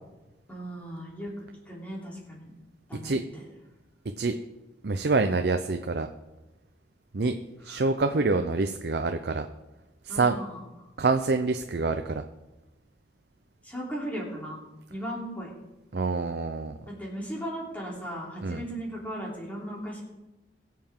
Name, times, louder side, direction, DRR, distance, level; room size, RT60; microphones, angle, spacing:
voice 1, 0.5-1.3 1.7-2.5 2.9-3.4 7.7-7.8 10.1-10.6 13.6-14.6 14.9-15.5 16.9-20.0, equal, 10° left, -4 dB, 3.3 m, -37 dB
voice 2, 4.8-6.1 7.1-7.4 7.6-9.5 10.0-10.4 11.0-12.2 15.9-16.7 18.4-18.6, right 3 dB, 60° right, 6 dB, 0.6 m, -26 dB
21.5 x 7.6 x 3.7 m, 1.0 s
head